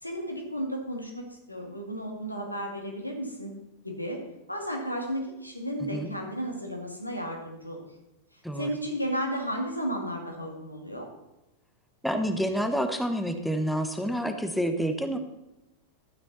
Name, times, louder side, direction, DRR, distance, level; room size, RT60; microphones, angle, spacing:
voice 1, 0.0-3.5 3.8-4.2 4.5-7.8 8.3-11.1, equal, 90° left, 1 dB, 2.0 m, -33 dB
voice 2, 5.8-6.1 8.4-8.7 12.0-15.2, equal, ahead, 7 dB, 1.0 m, -28 dB
12.0 x 9.0 x 4.1 m, 0.95 s
figure-of-eight pair, 90°, 0 cm